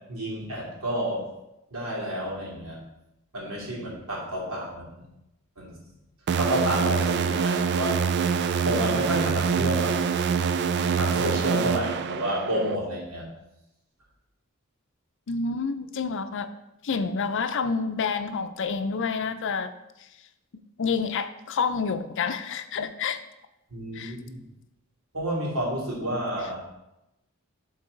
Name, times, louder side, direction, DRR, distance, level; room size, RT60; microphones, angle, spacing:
voice 1, 0.1-1.3 1.7-2.8 3.3-4.9 5.6-5.7 6.4-10.0 10.9-13.3 23.7-24.4 25.1-26.6, right 1 dB, 85° right, -4 dB, 2.6 m, -30 dB
sound 1, 6.3-12.8, right 6 dB, 55° right, 0.3 m, -25 dB
voice 2, 15.3-16.5 16.8-19.7 20.8-23.2 23.9-24.2, left 5 dB, 60° left, 10 dB, 0.5 m, -28 dB
11.5 x 4.0 x 3.9 m, 0.90 s
head